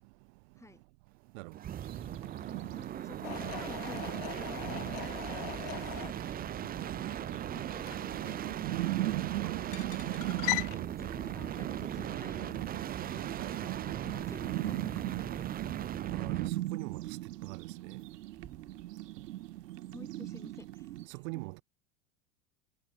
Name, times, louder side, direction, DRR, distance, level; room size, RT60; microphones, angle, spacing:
sound 1, 1.5-16.6 18.4-18.8, right 10 dB, 20° right, 0.7 m, -39 dB
sound 2, 1.8-21.1, right 15 dB, 80° right, 1.5 m, -39 dB
voice 1, 2.7-6.4 6.8-7.2 7.5-8.4 9.4-9.6 10.7-12.8 13.1-13.2 13.6-15.2 19.9-20.9 21.3-21.4, left 2 dB, 5° left, 6.8 m, -51 dB
sound 3, 3.2-10.8, left 32 dB, 55° left, 1.4 m, -41 dB
voice 2, 13.4-13.7 16.1-17.2 17.4-18.0 21.1-21.6, right 26 dB, 60° right, 7.4 m, -43 dB
supercardioid pair, 120°, 47 cm